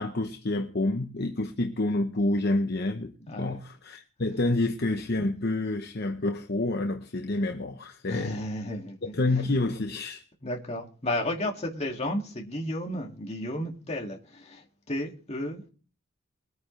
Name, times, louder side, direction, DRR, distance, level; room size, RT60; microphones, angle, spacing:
voice 1, 0.0-8.4 9.1-10.2, left 2 dB, 50° left, 0.8 m, -28 dB
voice 2, 3.3-3.6 8.1-9.0 10.4-15.7, left 1 dB, 30° left, 2.2 m, -33 dB
22.5 x 9.4 x 3.2 m
head